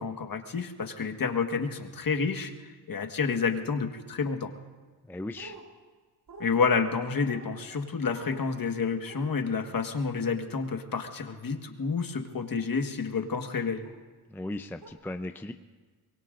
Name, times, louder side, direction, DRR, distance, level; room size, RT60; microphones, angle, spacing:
voice 1, 0.0-4.5 6.4-13.9, left 5 dB, 45° left, 5 dB, 1.7 m, -29 dB
voice 2, 5.1-5.5 14.3-15.5, left 1 dB, 5° left, 8 dB, 0.6 m, -37 dB
sound 1, 5.4-5.6 6.3-6.5 7.3-7.5 8.0-8.5 9.0-9.3 11.3-11.4 12.3-12.6 13.8-14.0 14.8-14.9, right 3 dB, 40° right, 3.6 m, -47 dB
24.5 x 23.0 x 2.6 m, 1.4 s
cardioid pair, 75°, 48 cm